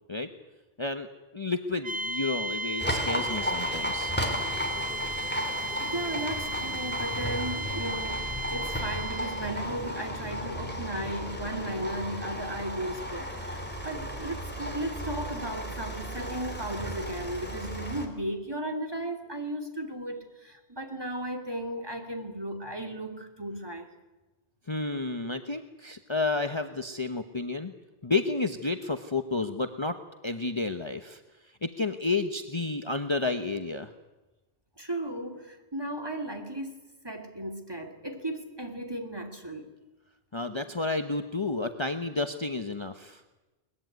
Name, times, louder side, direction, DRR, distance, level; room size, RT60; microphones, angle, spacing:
voice 1, 1.3-4.1 24.7-27.7 28.0-30.0 30.2-31.2 31.6-33.9 40.3-43.2, left 3 dB, 30° left, 7 dB, 1.1 m, -31 dB
sound 1, 1.8-9.6, right 2 dB, 50° right, 1.4 m, -34 dB
Livestock farm animals working animals, 2.8-18.1, equal, 10° left, 3.2 m, -34 dB
voice 2, 5.3-23.9 34.8-39.7, right 1 dB, 25° right, 4 dB, 2.9 m, -35 dB
22.0 x 20.5 x 9.5 m, 1.1 s
omnidirectional pair, 1.1 m